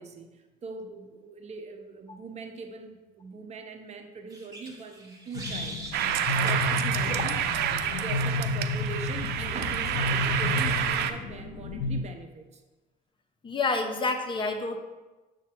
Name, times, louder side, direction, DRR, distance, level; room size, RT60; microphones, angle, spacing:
voice 1, 0.0-5.8 6.4-7.5 7.8-12.6, right 4 dB, 40° right, 5 dB, 0.7 m, -41 dB
sound 1, 4.3-6.2 6.5-6.7 7.2-7.4, right 1 dB, 20° right, 1.3 m, -39 dB
sound 2, 5.3-12.0, left 3 dB, 85° left, 0.7 m, -31 dB
sound 3, 5.9-11.1, right 10 dB, 75° right, 0.5 m, -29 dB
voice 2, 13.4-14.8, left 3 dB, 30° left, 5 dB, 0.7 m, -28 dB
7.5 x 2.6 x 5.9 m, 1.1 s
cardioid pair, 110°, 17 cm